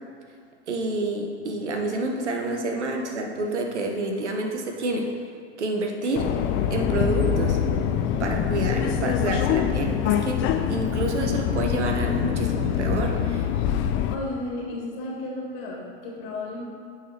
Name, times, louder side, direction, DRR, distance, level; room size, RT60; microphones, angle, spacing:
voice 1, 0.7-5.0 5.6-6.2 6.7-7.6 8.2-10.4 10.7-13.5, right 2 dB, 85° right, 3 dB, 1.0 m, -28 dB
Subway metro underground, 6.2-14.2, left 9 dB, 35° left, 0.5 m, -24 dB
voice 2, 14.1-16.6, left 2 dB, 55° left, -3 dB, 1.9 m, -33 dB
8.3 x 4.1 x 4.3 m, 2.1 s
hypercardioid pair, 95°, 34 cm